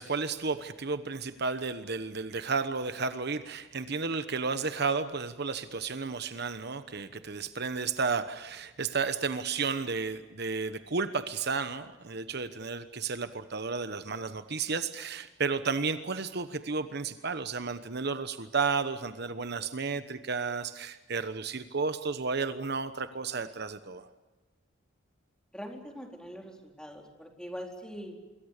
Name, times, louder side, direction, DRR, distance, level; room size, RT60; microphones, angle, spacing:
voice 1, 0.0-24.1, right 4 dB, 55° right, 10 dB, 1.1 m, -32 dB
voice 2, 25.5-28.1, equal, 5° left, 2 dB, 4.2 m, -42 dB
26.5 x 23.5 x 6.7 m, 1.2 s
head